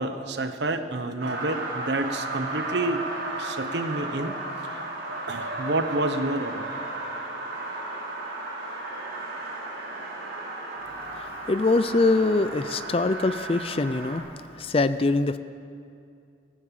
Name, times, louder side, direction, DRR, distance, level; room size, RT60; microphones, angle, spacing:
voice 1, 0.0-3.1 3.4-4.3 4.6-4.8 5.3-6.7, right 2 dB, 60° right, 9 dB, 0.9 m, -29 dB
sound 1, 1.2-14.2, right 2 dB, 85° right, 4.5 m, -34 dB
voice 2, 11.1-14.2 14.6-15.4, left 3 dB, 30° left, 13 dB, 0.4 m, -23 dB
14.5 x 13.0 x 7.6 m, 2.4 s
head